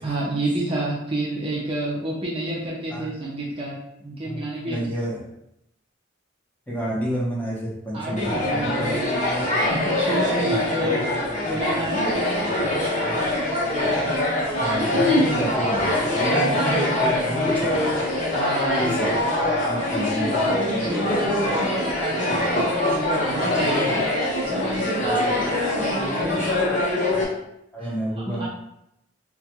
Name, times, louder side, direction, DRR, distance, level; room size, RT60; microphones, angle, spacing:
voice 1, 0.0-4.8 7.9-11.0 11.5-12.8 18.3-18.9 20.5-24.0 24.5-27.0 27.8-27.9 28.3-28.5, right 1 dB, 30° right, -4 dB, 0.6 m, -29 dB
voice 2, 4.2-5.2 6.7-9.0 10.5-10.9 14.6-17.8 18.8-19.2 19.6-20.7 25.0-25.1 27.7-28.5, right 1 dB, 10° left, -6 dB, 0.8 m, -30 dB
sound 1, 8.2-27.2, left 1 dB, 40° left, 0.9 m, -23 dB
3.6 x 2.2 x 2.9 m, 0.80 s
head